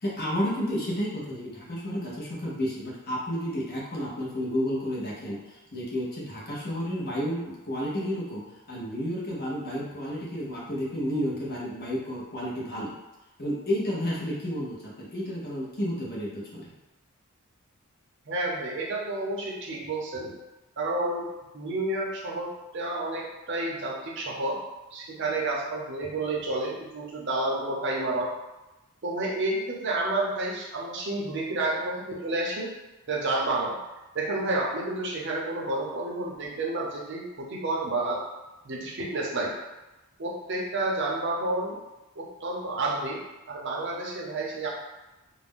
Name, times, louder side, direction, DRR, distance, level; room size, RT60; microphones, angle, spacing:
voice 1, 0.0-12.9 13.4-16.7, equal, 45° left, -5 dB, 0.7 m, -31 dB
voice 2, 18.3-20.4 20.8-22.5 22.7-24.6 24.9-28.3 29.0-32.7 33.1-33.7 34.1-38.2 38.6-39.5 40.2-41.8 42.2-43.2 43.5-44.7, right 2 dB, 55° right, -2 dB, 0.6 m, -30 dB
2.4 x 2.1 x 3.5 m, 1.0 s
head